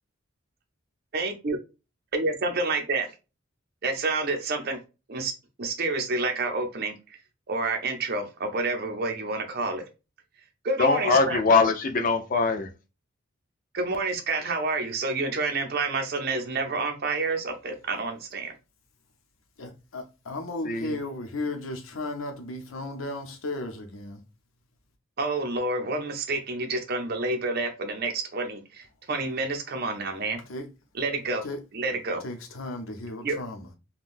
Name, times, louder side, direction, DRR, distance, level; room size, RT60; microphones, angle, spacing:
voice 1, 1.1-1.6 2.1-3.1 3.8-4.8 5.1-5.3 5.6-6.9 7.5-9.8 10.6-11.4 13.7-18.5 25.2-30.4 30.9-31.4 31.7-32.2 33.2-33.4, right 3 dB, 50° right, 0.6 m, -28 dB
voice 2, 10.8-12.7 20.6-21.0, left 4 dB, 40° left, 0.4 m, -22 dB
voice 3, 19.6-24.2 30.5-30.6 31.4-31.6 32.2-33.6, left 2 dB, 80° left, 0.8 m, -35 dB
3.6 x 2.2 x 2.4 m
head